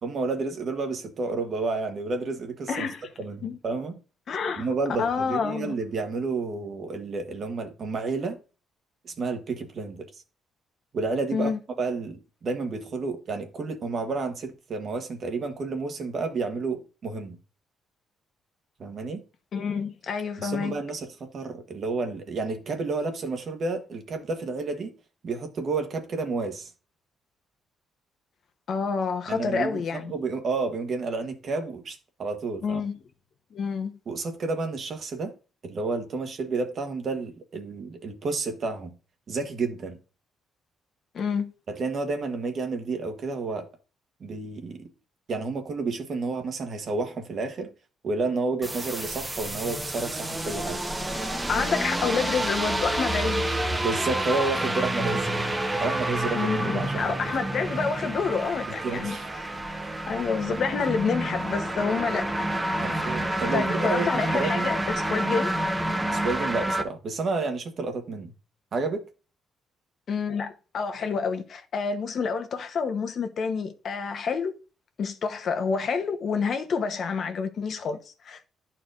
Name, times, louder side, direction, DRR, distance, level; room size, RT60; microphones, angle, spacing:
voice 1, 0.0-2.7 3.2-4.0 4.6-8.4 9.0-10.1 10.9-11.5 11.8-17.4 18.8-19.2 20.4-24.9 25.2-26.7 29.3-32.8 34.1-35.3 35.6-38.9 39.3-40.0 41.7-43.7 44.2-44.9 45.3-47.7 48.0-50.8 51.6-51.7 53.8-55.5 55.8-57.3 58.8-59.3 59.8-59.9 62.8-64.7 66.1-68.3 68.7-69.1, right 3 dB, 55° right, 1.3 m, -30 dB
voice 2, 2.7-3.1 3.4-3.6 4.3-4.7 5.0-5.7 11.3-11.6 19.5-20.8 28.7-30.1 32.6-33.0 33.5-34.0 41.1-41.5 51.5-53.4 56.3-59.2 60.1-62.5 63.3-65.5 70.1-74.6 75.0-78.5, left 5 dB, 60° left, 1.0 m, -28 dB
sound 1, 48.6-66.8, right 1 dB, 15° right, 0.9 m, -29 dB
11.0 x 4.4 x 2.5 m
cardioid pair, 90°, 0 cm